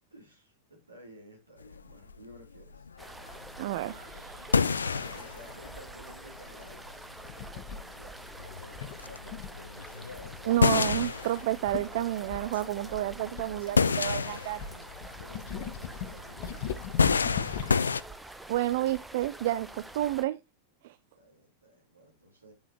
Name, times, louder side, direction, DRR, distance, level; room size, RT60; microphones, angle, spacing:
voice 1, 0.1-2.9 5.0-6.8 7.4-9.3 13.4-13.9 15.2-17.6 21.1-22.5, equal, 80° right, 2.8 m, -54 dB
sound 1, 1.6-18.0, left 5 dB, 75° left, 0.3 m, -31 dB
sound 2, 3.0-20.2, right 2 dB, 5° right, 0.7 m, -47 dB
voice 2, 3.6-4.6 10.4-14.8 18.5-20.4 20.8-21.0, right 14 dB, 55° right, 0.3 m, -30 dB
sound 3, 7.2-7.8 8.8-9.6 10.2-10.5 10.9-11.1 11.4-11.5 11.7-11.9 12.3-14.1 14.6-17.9, left 8 dB, 50° left, 0.8 m, -38 dB
8.6 x 5.5 x 3.0 m
figure-of-eight pair, 90°, 0 cm